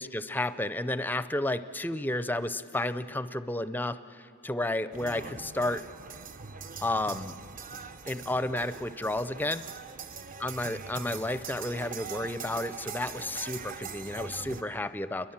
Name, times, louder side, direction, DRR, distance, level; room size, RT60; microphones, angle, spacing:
voice 1, 0.0-5.8 6.8-7.4 8.1-9.6 10.4-15.3, left 1 dB, 10° left, 13 dB, 0.5 m, -32 dB
sound 1, 4.9-14.6, right 5 dB, 40° right, 0.6 m, -42 dB
29.0 x 22.0 x 7.3 m, 2.7 s
head